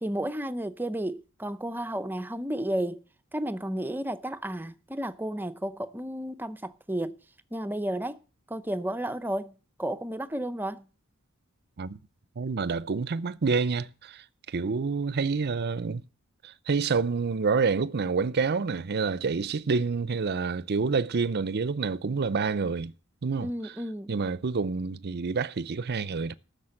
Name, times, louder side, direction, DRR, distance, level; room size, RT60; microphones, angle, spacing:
voice 1, 0.0-3.0 3.3-7.2 7.5-8.2 8.5-10.9 23.4-24.1, right 1 dB, 10° right, 0.6 m, -32 dB
voice 2, 12.4-16.0 16.4-22.9 23.2-23.8 24.1-26.3, right 4 dB, 50° right, 0.6 m, -28 dB
14.0 x 6.6 x 7.8 m
head